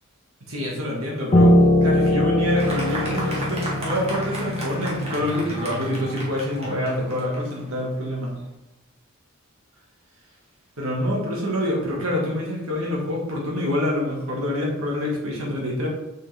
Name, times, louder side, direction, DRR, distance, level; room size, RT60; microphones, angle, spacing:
voice 1, 0.5-8.3 10.8-15.9, left 1 dB, 85° right, -2 dB, 1.9 m, -26 dB
Piano, 1.3-6.6, left 1 dB, 30° left, 0.7 m, -21 dB
Fireworks, 2.6-8.3, right 1 dB, 30° right, 1.7 m, -34 dB
6.8 x 5.5 x 3.5 m, 1.0 s
head